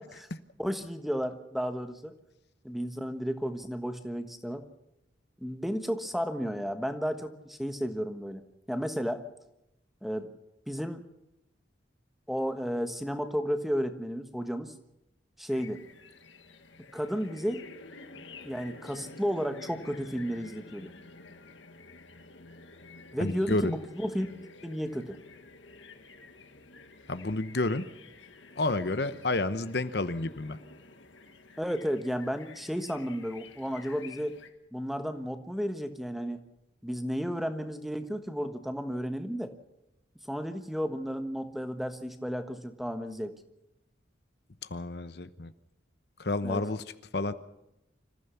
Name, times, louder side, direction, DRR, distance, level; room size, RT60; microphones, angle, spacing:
voice 1, 0.6-2.1 2.6-4.6 5.4-8.4 8.7-9.2 10.0-10.3 10.7-11.0 12.3-14.7 15.4-15.8 16.9-17.6 18.1-20.9 23.1-24.3 24.6-25.2 31.6-34.4 34.7-36.4 36.8-39.5 40.3-43.3 46.4-46.6, equal, ahead, 8 dB, 1.3 m, -33 dB
sound 1, 15.5-34.5, left 3 dB, 85° left, 2.0 m, -50 dB
voice 2, 23.2-23.8 27.1-27.9 28.6-30.6 44.6-45.5 46.2-46.8 47.1-47.3, left 2 dB, 60° left, 12 dB, 0.9 m, -30 dB
26.0 x 15.0 x 7.0 m, 0.87 s
head